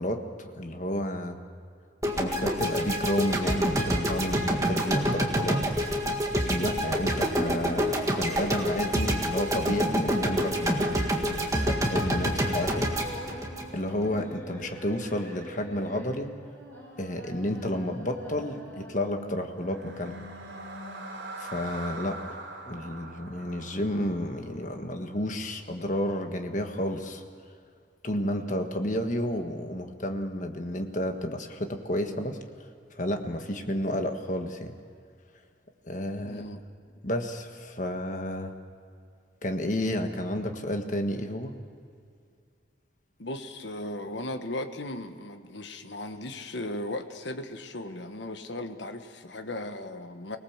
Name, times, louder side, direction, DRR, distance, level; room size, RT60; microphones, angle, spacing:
voice 1, 0.0-1.4 2.0-5.6 6.3-11.1 11.5-12.9 13.7-16.3 17.0-20.2 21.4-22.4 22.6-27.2 28.0-32.4 33.0-34.7 35.8-36.5 37.0-38.5 39.4-41.6, left 1 dB, 40° left, 5 dB, 1.5 m, -31 dB
sound 1, 2.0-14.2, equal, 15° right, 1.8 m, -27 dB
sound 2, 12.3-21.3, equal, 10° left, 5.4 m, -45 dB
sound 3, 19.5-25.7, right 2 dB, 70° right, 3.6 m, -43 dB
voice 2, 36.2-36.6 43.2-50.4, left 1 dB, 65° left, 7 dB, 1.4 m, -37 dB
25.0 x 18.5 x 7.3 m, 2.3 s
head